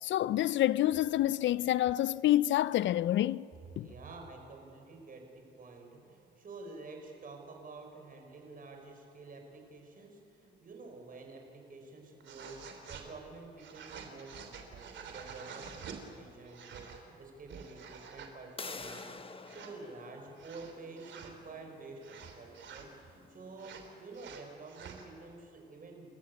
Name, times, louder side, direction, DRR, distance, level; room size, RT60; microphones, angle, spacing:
voice 1, 0.0-3.5 3.8-3.9, left 13 dB, 70° left, 0.5 m, -28 dB
voice 2, 3.8-26.1, right 3 dB, 45° right, 5.2 m, -49 dB
sound 1, 12.2-13.1 13.6-16.0 16.4-17.0 17.4-18.3 18.7-19.1 19.5-19.7 20.4-21.3 22.0-22.9 23.6-25.0, right 6 dB, 70° right, 3.1 m, -48 dB
sound 2, 18.6-24.2, left 4 dB, 25° left, 1.2 m, -49 dB
29.5 x 14.0 x 8.5 m
cardioid pair, 90°, 20 cm